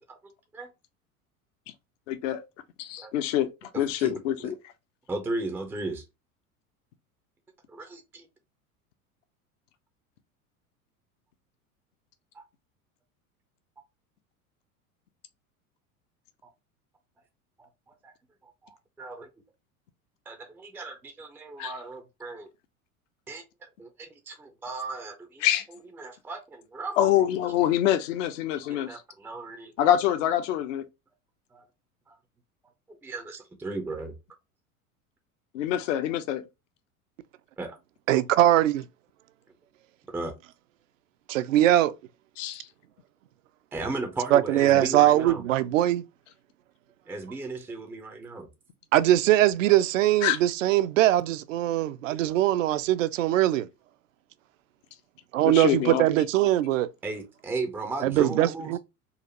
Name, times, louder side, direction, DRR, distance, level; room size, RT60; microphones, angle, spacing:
voice 1, 2.1-2.4 2.8-3.5 3.7-4.5 21.6-21.7 25.4-25.6 27.0-28.9 29.8-30.8 35.5-36.4 42.4-42.6 50.2-50.4 55.4-56.0, left 11 dB, 55° left, 0.6 m, -25 dB
voice 2, 3.7-4.5 5.1-6.0 7.7-8.3 12.3-12.4 16.4-16.5 17.6-18.1 18.4-19.3 20.3-22.5 23.3-23.4 23.8-25.5 26.0-27.4 28.7-29.9 31.5-31.7 32.1-32.2 33.0-34.1 37.6-37.8 40.1-40.3 43.7-45.5 47.1-48.5 57.0-58.8, right 3 dB, 5° right, 0.4 m, -36 dB
voice 3, 38.1-38.9 41.3-41.9 44.3-46.0 48.9-53.7 55.3-56.9 58.0-58.8, right 13 dB, 60° right, 0.5 m, -21 dB
3.9 x 2.5 x 2.8 m
figure-of-eight pair, 80°, 44 cm